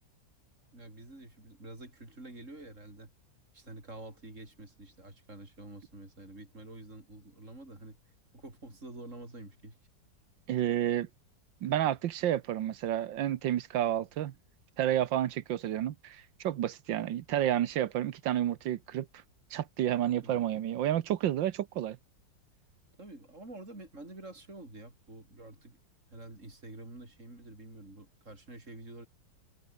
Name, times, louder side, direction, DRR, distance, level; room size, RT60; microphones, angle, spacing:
voice 1, 0.7-3.1 3.5-8.0 8.3-9.8 20.2-20.4 23.0-25.8 26.1-29.1, right 2 dB, 40° right, 7.3 m, -48 dB
voice 2, 10.5-11.1 11.6-14.3 14.8-19.1 19.5-22.0, right 11 dB, 85° right, 1.6 m, -30 dB
omnidirectional pair, 2.0 m